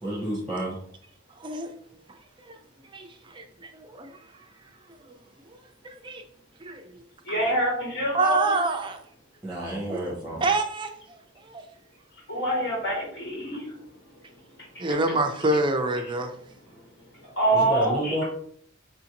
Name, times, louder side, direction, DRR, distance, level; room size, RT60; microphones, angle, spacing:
voice 1, 0.0-0.8 9.4-10.4 16.7-16.8 17.5-18.2, right 1 dB, ahead, 0.8 m, -30 dB
voice 2, 1.4-1.7 2.4-2.5 2.9-4.2 5.1-5.2 5.5-5.6 5.8-6.2 6.6-7.0 7.3-7.5 8.1-9.0 9.9-10.0 10.4-11.6 14.8-16.3, right 2 dB, 25° right, 0.4 m, -27 dB
voice 3, 7.3-8.4 12.3-13.6 17.4-18.1, right 1 dB, 60° left, 1.1 m, -25 dB
4.8 x 2.5 x 2.9 m
head